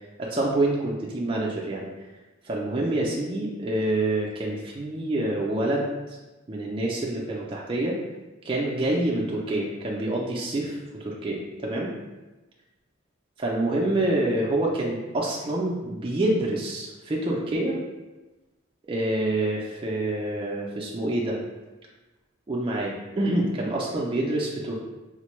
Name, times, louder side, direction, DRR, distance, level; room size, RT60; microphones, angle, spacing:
voice 1, 0.2-1.8 2.4-5.9 6.5-8.0 8.4-11.9 13.4-17.8 18.9-21.4 22.5-24.8, right 1 dB, 25° right, -3 dB, 0.4 m, -27 dB
4.1 x 2.2 x 3.0 m, 1.1 s
head